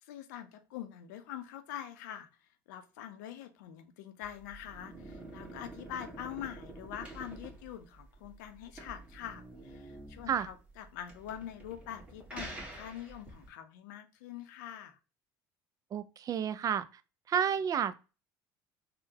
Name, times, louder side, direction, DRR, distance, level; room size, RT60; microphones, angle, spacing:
voice 1, 0.0-15.0, left 10 dB, 85° left, 0.5 m, -44 dB
sound 1, 4.2-13.5, right 2 dB, 10° right, 1.4 m, -48 dB
voice 2, 15.9-16.9 17.3-18.0, right 8 dB, 40° right, 0.3 m, -30 dB
3.7 x 2.1 x 2.7 m
supercardioid pair, 90°, 10 cm